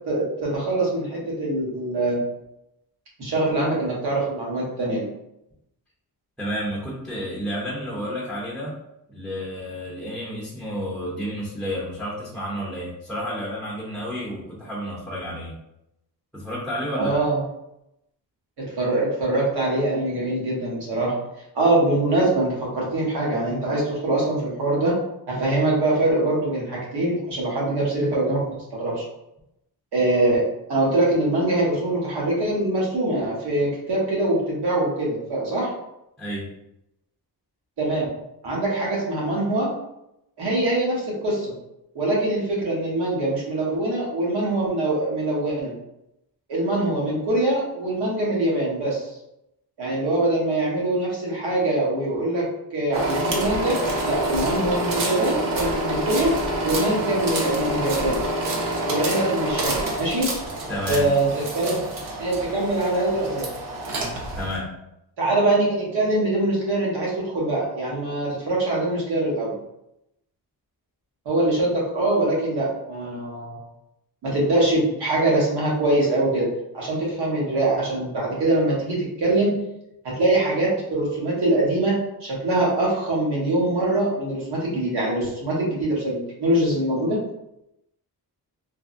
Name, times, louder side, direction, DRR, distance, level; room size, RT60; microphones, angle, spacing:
voice 1, 0.1-2.2 3.2-5.0 16.9-17.4 18.6-21.1 21.5-25.0 25.3-29.0 29.9-35.7 37.8-38.1 38.4-39.7 40.4-41.5 41.9-45.7 46.5-49.1 49.8-52.5 52.7-53.8 54.0-56.3 56.6-58.2 58.9-60.3 60.9-61.3 61.5-61.8 62.2-63.5 65.2-69.6 71.2-73.6 74.2-79.6 80.0-87.2, right 2 dB, 80° right, -4 dB, 1.2 m, -23 dB
voice 2, 6.4-8.8 9.1-15.5 16.3-17.2 36.2-36.5 60.7-61.1 64.4-64.7, equal, ahead, -8 dB, 0.5 m, -31 dB
sound 1, 52.9-64.6, right 1 dB, 55° right, 0.6 m, -27 dB
3.4 x 2.1 x 2.5 m, 0.84 s
wide cardioid pair, 180°, 39 cm